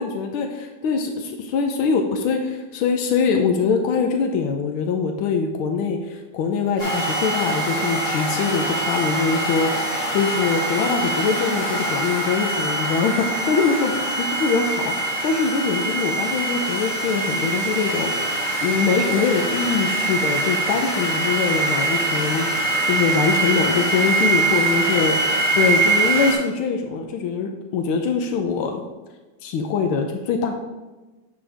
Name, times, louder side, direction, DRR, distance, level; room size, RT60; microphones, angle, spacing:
voice 1, 0.0-9.8 10.1-13.9 14.2-14.9 15.2-18.1 18.6-22.6 22.9-28.8 29.4-30.5, left 5 dB, 80° left, 4 dB, 1.6 m, -23 dB
sound 1, 6.8-26.3, right 2 dB, 30° left, 2.1 m, -23 dB
9.9 x 5.3 x 3.4 m, 1.2 s
omnidirectional pair, 2.3 m